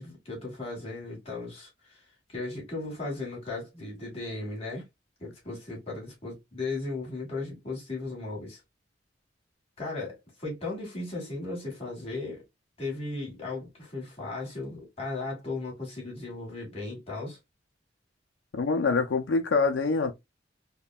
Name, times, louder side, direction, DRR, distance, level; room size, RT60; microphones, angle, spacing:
voice 1, 0.0-2.0 2.3-4.8 5.2-8.6 9.8-12.4 12.8-17.4, left 3 dB, 35° left, 1.6 m, -36 dB
voice 2, 18.5-20.1, left 4 dB, 85° left, 0.5 m, -25 dB
3.5 x 2.2 x 2.2 m
head